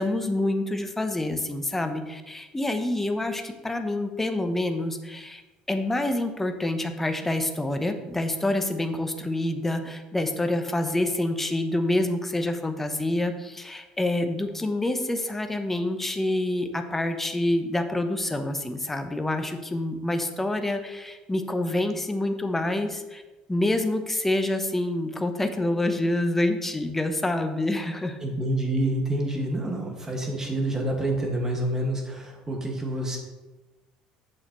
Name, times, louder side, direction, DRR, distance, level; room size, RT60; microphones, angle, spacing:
voice 1, 0.0-5.4 5.7-23.2 23.5-28.2, left 1 dB, 10° left, 6 dB, 0.8 m, -27 dB
voice 2, 28.2-33.2, right 1 dB, 20° right, 1 dB, 1.8 m, -27 dB
8.6 x 6.5 x 3.1 m, 1.1 s
supercardioid pair, 95°, 2 cm